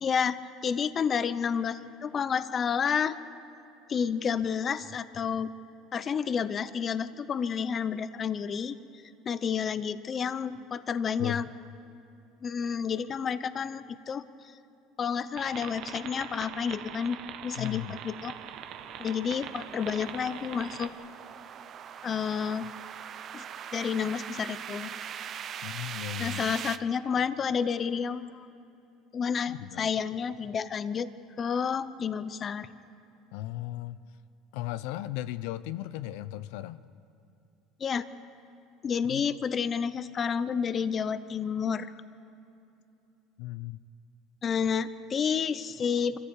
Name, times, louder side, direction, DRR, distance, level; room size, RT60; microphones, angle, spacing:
voice 1, 0.0-3.2 3.9-5.5 5.9-8.8 9.3-11.4 12.4-14.2 15.0-18.3 19.0-20.9 22.0-22.6 23.3-23.4 23.7-24.9 26.2-28.5 29.1-31.1 31.4-32.7 37.8-38.1 38.8-41.9 44.4-46.2, left 7 dB, 30° left, 14 dB, 0.7 m, -30 dB
sound 1, 15.4-20.9, right 9 dB, 55° right, 1.1 m, -42 dB
voice 2, 17.6-18.0 25.6-26.6 29.5-29.9 33.3-34.0 34.5-36.8 39.1-39.3 43.4-43.8, left 14 dB, 80° left, 14 dB, 0.6 m, -36 dB
sound 2, 17.7-26.8, right 8 dB, 35° right, 0.7 m, -42 dB
25.5 x 15.0 x 8.3 m, 2.8 s
cardioid pair, 145°, 0 cm